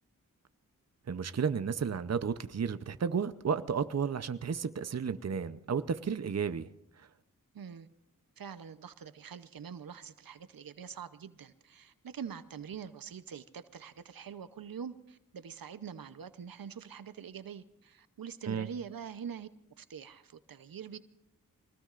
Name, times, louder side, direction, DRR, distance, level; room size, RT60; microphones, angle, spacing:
voice 1, 1.1-6.7 7.0-7.1 18.5-18.7, right 6 dB, 50° right, 0.7 m, -33 dB
voice 2, 7.5-7.9 8.4-19.5 19.8-21.0, right 7 dB, 80° right, 0.8 m, -44 dB
24.0 x 19.0 x 2.5 m
wide cardioid pair, 65°, 34 cm